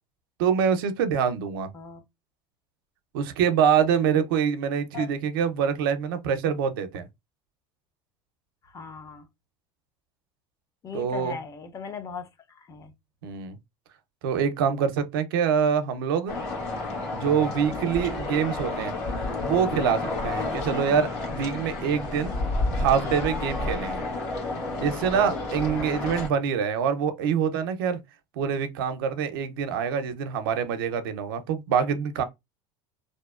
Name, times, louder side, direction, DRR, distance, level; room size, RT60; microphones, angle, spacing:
voice 1, 0.4-1.7 3.1-7.1 10.9-11.4 13.2-13.6 14.2-16.4 17.1-18.9 19.4-22.3 22.7-24.0 24.8-28.0 28.4-32.2, right 7 dB, 85° right, 0.5 m, -25 dB
voice 2, 3.8-4.3 4.9-5.1 8.6-9.3 10.8-12.9 17.8-18.1 20.3-20.6 23.6-24.0 25.7-26.2, left 5 dB, 30° left, 0.6 m, -40 dB
sound 1, 16.3-26.3, left 2 dB, 60° left, 1.2 m, -30 dB
2.6 x 2.1 x 2.3 m
supercardioid pair, 110°, 11 cm